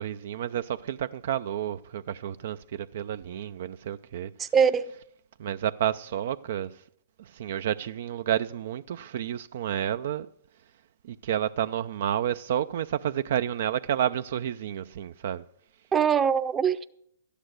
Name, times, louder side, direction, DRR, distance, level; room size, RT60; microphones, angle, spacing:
voice 1, 0.0-4.3 5.4-6.7 7.2-10.3 11.0-15.4, right 10 dB, 60° right, 0.4 m, -30 dB
voice 2, 4.4-4.9 15.9-16.8, right 7 dB, 20° right, 0.7 m, -22 dB
13.0 x 10.0 x 6.4 m
hypercardioid pair, 125°, 0 cm